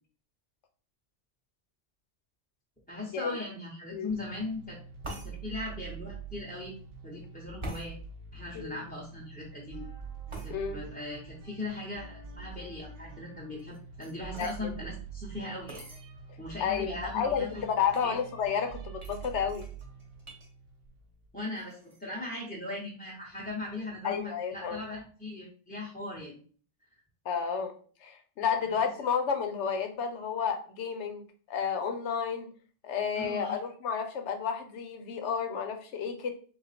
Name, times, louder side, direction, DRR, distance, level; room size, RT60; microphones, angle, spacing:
voice 1, 2.9-4.8 5.2-6.7 7.0-8.0 8.3-9.9 10.4-15.9 16.4-17.6 18.0-18.1 21.3-26.4 28.7-28.9 33.1-33.6, left 2 dB, 10° left, -5 dB, 0.7 m, -39 dB
sound 1, 4.1-21.4, right 5 dB, 60° right, 0.8 m, -45 dB
sound 2, 5.0-5.3 7.6-7.9 10.3-10.5 13.6-14.6 15.7-16.0 16.7-16.8 17.0-17.4 17.9-18.1 19.0-20.5 20.8-21.2 21.5-22.0, right 1 dB, 30° right, 0.8 m, -44 dB
voice 2, 14.4-14.7 16.6-19.6 24.0-24.8 27.3-27.7 28.0-31.2 31.5-32.5 32.8-36.3, left 7 dB, 80° left, 6 dB, 1.0 m, -31 dB
3.9 x 2.5 x 4.1 m, 0.43 s
omnidirectional pair, 1.2 m